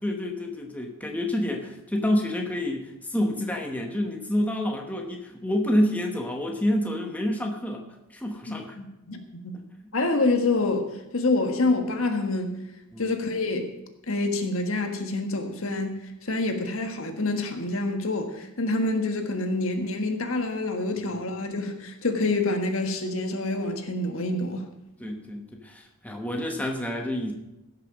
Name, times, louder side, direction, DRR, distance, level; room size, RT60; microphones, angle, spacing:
voice 1, 0.0-7.8 8.1-8.8 12.9-13.1 20.9-21.2 25.0-27.3, left 1 dB, 5° left, 1.1 m, -28 dB
voice 2, 8.5-9.6 9.9-12.6 13.0-13.8 14.1-24.6, left 2 dB, 65° left, 1.5 m, -27 dB
16.0 x 6.7 x 6.1 m
head